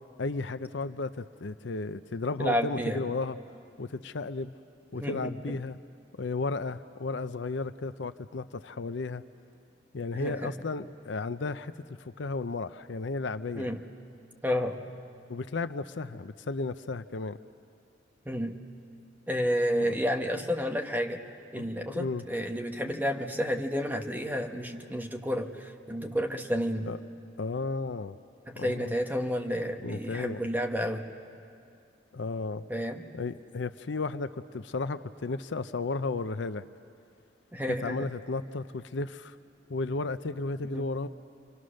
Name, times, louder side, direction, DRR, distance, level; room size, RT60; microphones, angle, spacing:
voice 1, 0.2-3.4 3.8-4.5 4.9-5.8 6.2-9.2 9.9-11.7 12.0-13.7 15.3-17.4 19.8-19.9 21.5-21.7 21.9-22.2 26.9-27.0 27.4-28.2 28.6-28.9 29.8-30.5 32.1-32.6 33.1-36.6 37.8-39.4 39.7-41.1, left 3 dB, 70° left, 12 dB, 0.6 m, -34 dB
voice 2, 2.4-3.0 4.9-5.6 10.1-10.5 13.5-13.8 14.4-14.8 18.2-18.6 19.3-26.9 28.5-31.0 32.7-33.0 37.5-38.1 40.6-40.9, equal, 10° right, 3 dB, 1.2 m, -31 dB
29.0 x 23.5 x 6.4 m, 2.4 s
head